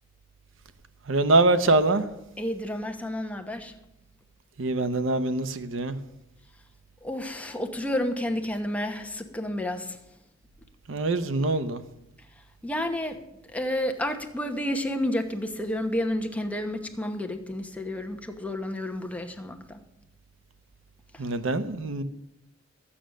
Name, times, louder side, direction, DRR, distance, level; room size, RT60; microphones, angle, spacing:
voice 1, 1.1-2.0 4.6-6.0 10.9-11.8 21.2-22.0, right 2 dB, 80° right, 0.8 m, -24 dB
voice 2, 2.4-3.7 7.0-10.0 12.6-13.2 13.5-19.8 21.1-21.3, left 1 dB, 5° left, 1.0 m, -30 dB
12.5 x 8.7 x 6.3 m
head